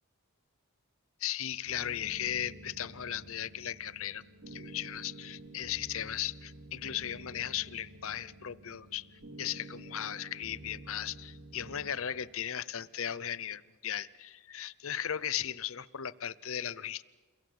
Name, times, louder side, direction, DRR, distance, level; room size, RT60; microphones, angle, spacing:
voice 1, 1.2-9.1 9.4-17.0, left 10 dB, 65° left, 19 dB, 0.7 m, -37 dB
sound 1, 1.7-11.9, right 2 dB, 80° right, 3.4 m, -50 dB
28.5 x 23.0 x 8.0 m, 1.4 s
head